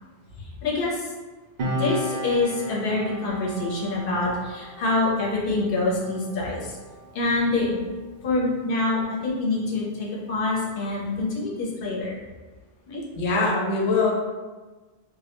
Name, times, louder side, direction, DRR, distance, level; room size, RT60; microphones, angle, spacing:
voice 1, 0.6-1.1 1.6-6.8 7.1-7.8 8.2-12.2 12.9-13.0, left 2 dB, 65° left, -3 dB, 0.8 m, -26 dB
Piano, 1.6-8.6 8.9-9.1, equal, 55° right, 0.6 m, -35 dB
voice 2, 13.2-14.1, left 3 dB, 90° left, -2 dB, 0.9 m, -22 dB
2.1 x 2.1 x 2.8 m, 1.3 s
omnidirectional pair, 1.1 m